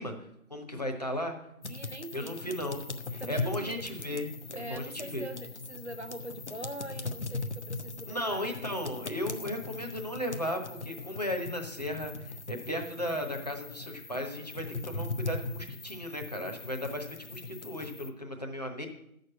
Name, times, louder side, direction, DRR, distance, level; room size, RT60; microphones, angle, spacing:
voice 1, 0.0-1.3 2.1-2.8 3.1-5.3 8.1-18.9, left 1 dB, 30° left, 2 dB, 1.1 m, -36 dB
sound 1, 1.6-18.1, left 3 dB, 55° left, 0.7 m, -40 dB
voice 2, 1.7-2.4 3.2-3.8 4.5-8.6, right 1 dB, 55° right, 9 dB, 0.6 m, -43 dB
9.3 x 6.6 x 7.8 m, 0.79 s
figure-of-eight pair, 180°, 42 cm